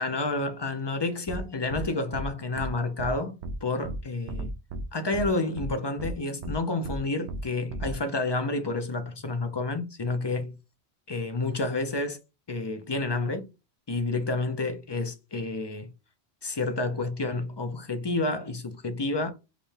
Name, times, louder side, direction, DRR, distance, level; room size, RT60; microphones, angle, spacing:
voice 1, 0.0-4.5 4.9-10.6 11.1-12.2 12.5-13.5 13.9-15.9 16.4-19.3, left 2 dB, 35° left, 0.4 m, -30 dB
sound 1, 1.3-1.4 1.7-1.8 2.1-2.3 2.6-2.7 3.0-3.1 3.4-3.5 3.8-4.0 4.3-4.8 5.1-5.3 5.6-5.7 6.0-6.1 6.4-6.5 6.8-7.0 7.3-7.4 7.7-7.9, right 2 dB, 80° right, 0.9 m, -34 dB
4.9 x 2.2 x 3.2 m
omnidirectional pair, 1.1 m